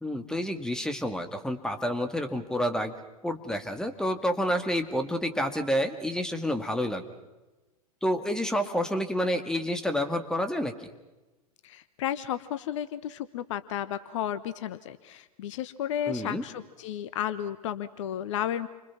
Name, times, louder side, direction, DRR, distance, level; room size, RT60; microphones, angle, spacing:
voice 1, 0.0-2.9 3.2-7.0 8.0-10.9 16.1-16.4, equal, 5° left, 7 dB, 2.0 m, -29 dB
voice 2, 11.6-18.7, left 10 dB, 55° left, 13 dB, 1.1 m, -33 dB
29.5 x 25.0 x 6.0 m, 1.1 s
figure-of-eight pair, 90°, 19 cm